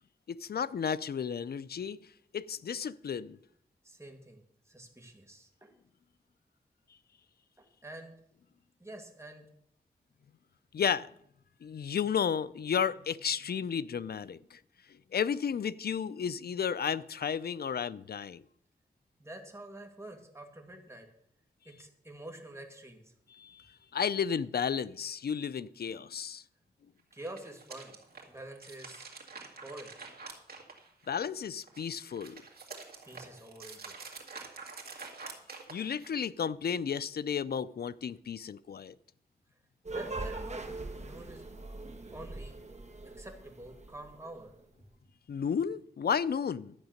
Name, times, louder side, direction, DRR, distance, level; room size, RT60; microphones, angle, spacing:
voice 1, 0.3-2.0 2.3-3.4 10.7-11.1 11.6-14.6 15.1-18.4 23.3-23.6 23.9-26.4 31.1-32.4 35.7-38.9 45.3-46.7, left 7 dB, 75° left, 0.4 m, -33 dB
voice 2, 3.8-5.7 7.6-8.1 8.8-9.4 19.2-21.1 21.7-23.1 27.1-28.0 28.3-29.1 29.6-29.9 33.0-33.9 39.9-41.5 42.1-42.6 43.2-44.5, right 1 dB, 15° right, 2.1 m, -47 dB
sound 1, 27.1-31.2 31.6-36.2, right 4 dB, 70° right, 2.2 m, -47 dB
sound 2, 39.8-44.5, right 2 dB, 45° right, 1.5 m, -42 dB
12.0 x 8.3 x 6.5 m
wide cardioid pair, 80°, 16 cm